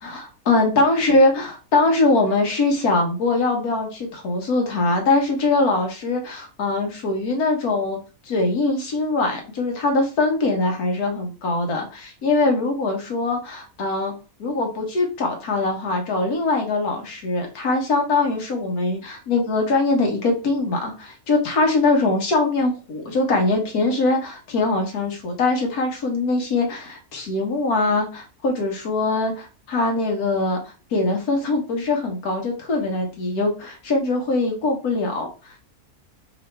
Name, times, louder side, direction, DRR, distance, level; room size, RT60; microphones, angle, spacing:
voice 1, 0.0-8.0 8.2-14.1 14.4-35.6, left 2 dB, 70° left, 2 dB, 1.6 m, -22 dB
4.7 x 3.1 x 3.2 m, 0.33 s
omnidirectional pair, 1.6 m